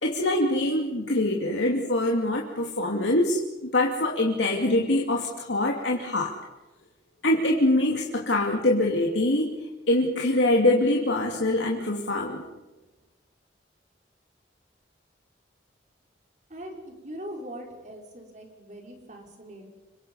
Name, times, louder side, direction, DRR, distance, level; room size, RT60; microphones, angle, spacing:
voice 1, 0.0-6.3 7.2-9.6 9.9-12.4, left 1 dB, 85° left, 0 dB, 2.6 m, -24 dB
voice 2, 16.5-19.7, equal, 40° right, 1 dB, 5.5 m, -41 dB
27.5 x 23.5 x 5.6 m, 1.1 s
head